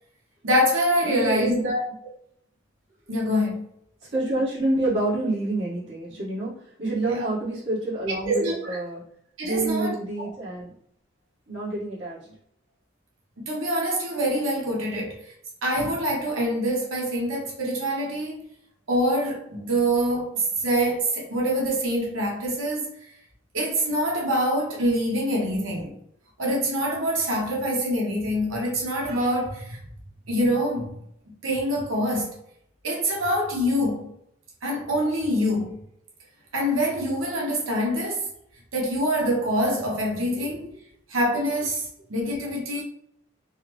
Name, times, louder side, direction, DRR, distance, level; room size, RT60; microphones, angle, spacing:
voice 1, 0.4-1.8 3.1-3.6 7.1-7.2 8.2-8.8 9.4-10.3 13.4-15.2 15.6-18.4 18.9-22.9 23.5-26.0 26.4-29.8 30.3-31.0 31.4-32.4 32.8-34.1 34.6-35.8 36.5-38.3 38.7-40.7 41.1-42.8, equal, 85° right, 0.9 m, -25 dB
voice 2, 1.0-1.7 4.1-9.0 9.4-10.7 11.5-12.3 40.4-40.5, right 2 dB, 70° right, 1.4 m, -28 dB
3.9 x 2.0 x 2.9 m
head